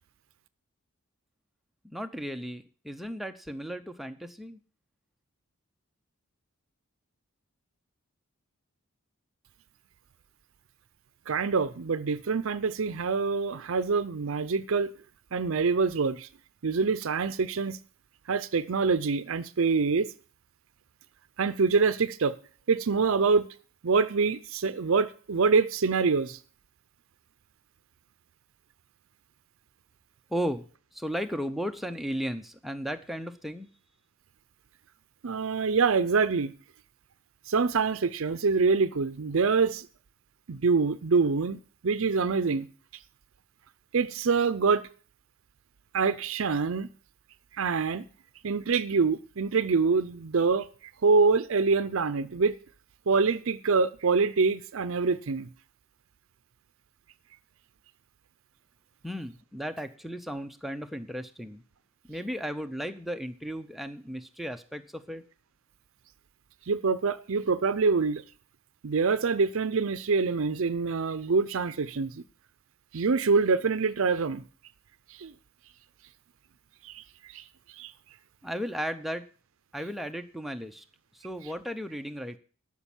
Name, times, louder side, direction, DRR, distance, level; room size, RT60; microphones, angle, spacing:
voice 1, 1.8-4.6 30.3-33.7 59.0-61.6 62.0-65.2 78.4-79.3 79.7-80.8 81.1-82.4, equal, ahead, 0.6 m, -35 dB
voice 2, 11.3-14.9 15.3-16.3 16.6-17.8 18.3-20.1 21.4-22.4 22.7-23.5 23.8-26.4 35.2-36.5 37.5-39.9 40.5-42.7 43.9-44.9 45.9-46.9 47.6-48.0 48.4-50.7 51.0-52.5 53.1-55.5 66.7-68.2 68.8-72.2 72.9-74.4 75.2-75.3 76.8-77.0 77.3-77.4 77.8-77.9, right 4 dB, 70° right, 0.5 m, -25 dB
12.5 x 6.1 x 7.2 m
head